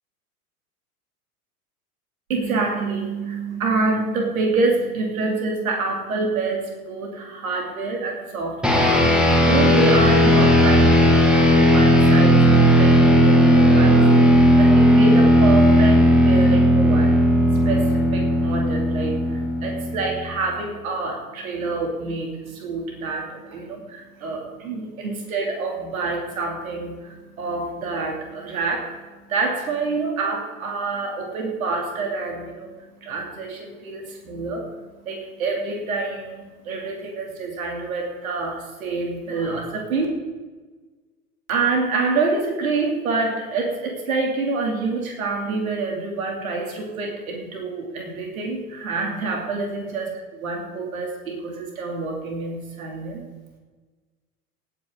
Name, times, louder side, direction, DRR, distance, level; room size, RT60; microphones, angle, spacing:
voice 1, 2.3-9.2 9.4-12.5 12.8-17.2 17.5-40.1 41.5-53.2, right 3 dB, 60° right, 1 dB, 3.0 m, -27 dB
sound 1, 8.6-20.3, equal, ahead, 1.8 m, -15 dB
18.5 x 9.1 x 3.9 m, 1.3 s
figure-of-eight pair, 85°, 46 cm